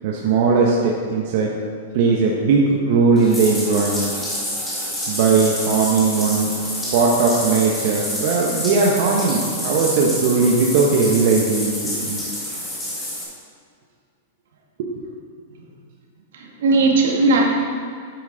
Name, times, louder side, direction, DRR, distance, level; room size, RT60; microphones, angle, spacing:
voice 1, 0.0-1.5 1.9-4.1 5.1-6.5 6.9-12.4 14.8-14.9, right 4 dB, 45° right, -2 dB, 1.0 m, -18 dB
Bathtub (filling or washing), 3.2-13.2, left 1 dB, 10° left, 1.8 m, -28 dB
voice 2, 16.3-17.4, right 3 dB, 75° right, 0 dB, 1.8 m, -17 dB
9.2 x 8.3 x 4.0 m, 2.2 s
supercardioid pair, 165°, 0 cm